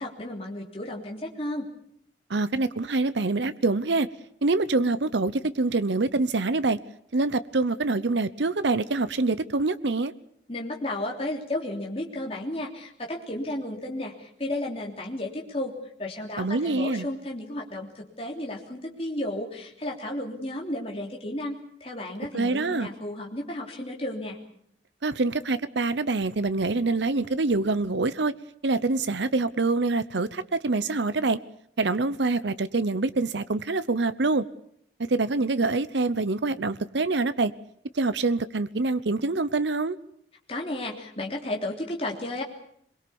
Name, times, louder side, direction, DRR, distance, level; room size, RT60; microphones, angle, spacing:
voice 1, 0.0-1.7 10.5-15.7 16.0-24.4 40.5-42.4, left 1 dB, 30° left, 0 dB, 3.3 m, -33 dB
voice 2, 2.3-4.1 4.4-6.8 7.1-10.1 16.4-17.1 22.3-22.9 25.0-28.3 28.6-31.4 31.8-34.5 35.0-37.5 37.9-40.0, right 3 dB, 75° right, 14 dB, 0.8 m, -25 dB
23.5 x 22.5 x 7.1 m, 0.69 s
head